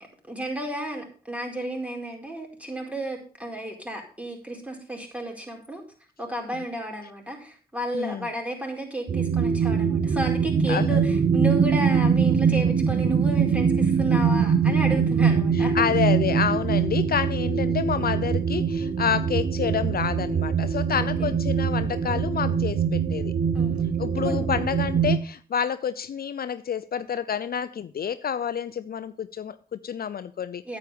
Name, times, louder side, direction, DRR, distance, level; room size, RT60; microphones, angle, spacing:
voice 1, 0.3-5.8 6.2-15.8 21.2-21.3 23.5-23.8 24.2-24.5 30.6-30.8, right 1 dB, 5° right, 4.5 m, -32 dB
voice 2, 7.9-8.3 10.7-11.0 15.5-23.3 24.0-30.6, left 8 dB, 60° left, 0.6 m, -28 dB
sound 1, 9.1-25.2, right 6 dB, 55° right, 0.9 m, -23 dB
9.1 x 8.4 x 5.1 m
supercardioid pair, 45°, 18 cm